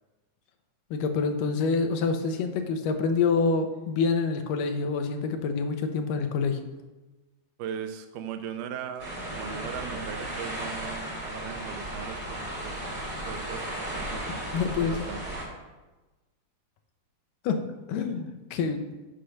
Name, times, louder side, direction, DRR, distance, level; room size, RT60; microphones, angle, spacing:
voice 1, 0.9-6.6 14.5-15.0 17.4-17.6 17.9-18.8, left 4 dB, 85° left, 6 dB, 2.4 m, -27 dB
voice 2, 7.6-14.2 14.5-15.2, right 8 dB, 80° right, 8 dB, 2.1 m, -39 dB
sound 1, 9.0-15.5, right 1 dB, 25° right, 1.1 m, -35 dB
6.6 x 5.7 x 6.4 m, 1.2 s
omnidirectional pair, 3.8 m